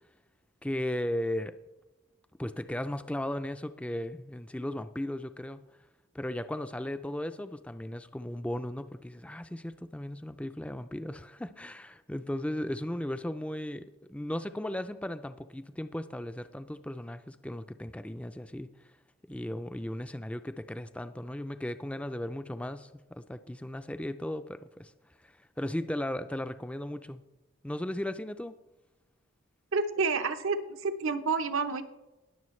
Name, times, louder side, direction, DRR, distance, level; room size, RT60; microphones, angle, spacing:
voice 1, 0.6-1.5 2.4-5.6 6.1-18.7 19.3-24.9 25.2-27.2 27.6-28.5, left 1 dB, 5° left, 11 dB, 0.3 m, -36 dB
voice 2, 29.7-31.8, right 4 dB, 85° right, 8 dB, 0.8 m, -29 dB
20.5 x 7.0 x 3.2 m, 1.0 s
head